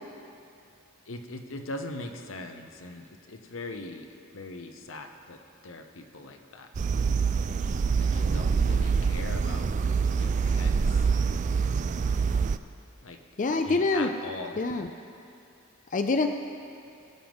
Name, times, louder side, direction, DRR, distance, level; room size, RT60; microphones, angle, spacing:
voice 1, 1.1-4.1 4.3-5.4 5.6-6.7 8.0-11.1 13.0-13.2 13.6-14.6, left 2 dB, 85° left, 5 dB, 0.9 m, -41 dB
sound 1, 6.7-12.6, right 5 dB, 40° right, 0.3 m, -25 dB
voice 2, 13.4-14.1 14.6-14.9 15.9-16.3, left 3 dB, 40° left, 6 dB, 0.5 m, -25 dB
21.0 x 7.6 x 3.6 m, 2.5 s
head